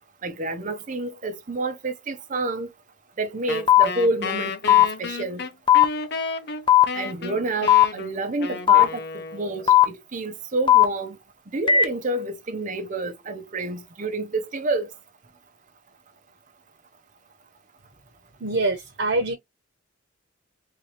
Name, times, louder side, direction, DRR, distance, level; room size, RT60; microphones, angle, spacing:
voice 1, 0.2-2.7 3.2-5.4 6.9-11.2 11.5-14.9, right 2 dB, 40° right, 0.7 m, -29 dB
Wind instrument woodwind instrument, 3.5-9.8, left 4 dB, 55° left, 0.8 m, -32 dB
sound 1, 3.7-3.8 4.7-4.8 5.7-5.9 6.7-6.9 7.7-7.9 8.7-8.9 9.7-9.8 10.7-10.8 11.7-11.8, left 11 dB, 25° left, 0.5 m, -14 dB
voice 2, 18.4-19.3, right 2 dB, 60° right, 1.0 m, -24 dB
3.6 x 2.9 x 3.2 m
head